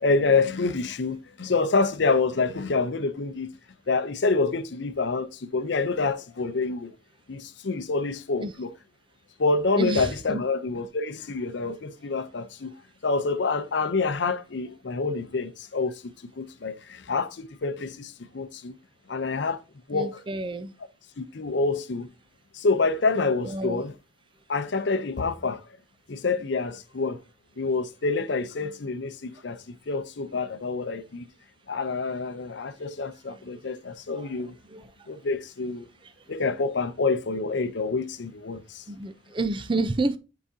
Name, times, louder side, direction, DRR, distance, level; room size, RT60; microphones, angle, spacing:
voice 1, 0.0-3.5 3.9-6.9 7.3-8.7 9.4-12.7 13.0-18.8 19.1-19.6 19.9-20.2 21.2-22.1 22.5-23.9 24.5-25.6 26.1-27.2 27.6-31.3 31.7-34.5 35.1-35.9 36.3-38.8, left 3 dB, 65° left, 0.6 m, -27 dB
voice 2, 9.8-10.4 19.9-20.7 23.4-23.8 32.1-32.2 34.1-34.3 34.7-34.9 38.9-40.2, right 2 dB, 25° right, 0.5 m, -29 dB
7.9 x 4.9 x 2.7 m
head